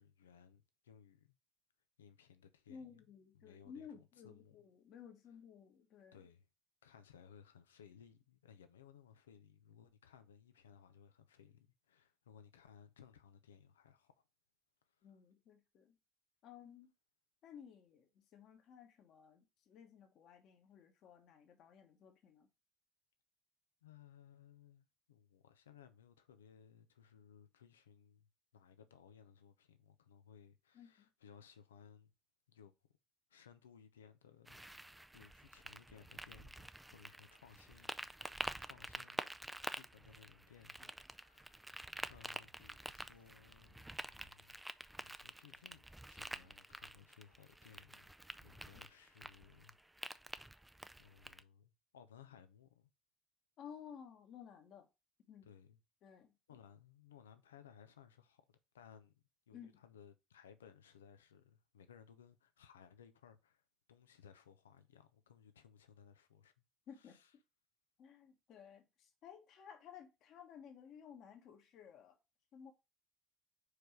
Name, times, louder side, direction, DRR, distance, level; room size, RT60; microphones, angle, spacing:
voice 1, 0.0-1.4 2.0-3.1 3.3-4.7 6.1-6.5 6.8-14.1 14.8-15.1 23.8-28.3 28.5-32.1 32.5-32.7 33.3-34.6 35.1-38.0 38.3-39.3 39.7-44.6 45.0-48.1 48.4-49.8 51.0-52.9 55.4-55.8 56.5-58.4 58.7-66.7 67.0-67.3, left 8 dB, 80° left, 0.7 m, -62 dB
voice 2, 2.7-6.2 15.0-16.0 16.4-16.9 17.4-22.5 30.7-31.1 53.6-54.9 55.3-55.5 56.0-56.6 59.5-59.7 66.9-67.2 68.0-72.2 72.5-72.7, left 7 dB, 55° left, 1.4 m, -56 dB
sound 1, 34.5-51.4, right 1 dB, 10° right, 0.5 m, -48 dB
4.9 x 4.6 x 5.1 m
figure-of-eight pair, 50°, 0 cm